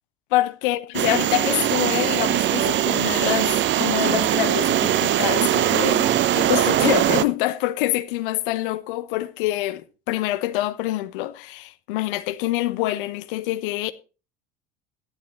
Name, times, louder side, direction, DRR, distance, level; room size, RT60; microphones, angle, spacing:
voice 1, 0.3-13.9, left 16 dB, 60° left, 1.2 m, -26 dB
sound 1, 0.9-7.2, right 12 dB, 40° right, 0.9 m, -21 dB
15.0 x 12.5 x 3.1 m
figure-of-eight pair, 70°, 30 cm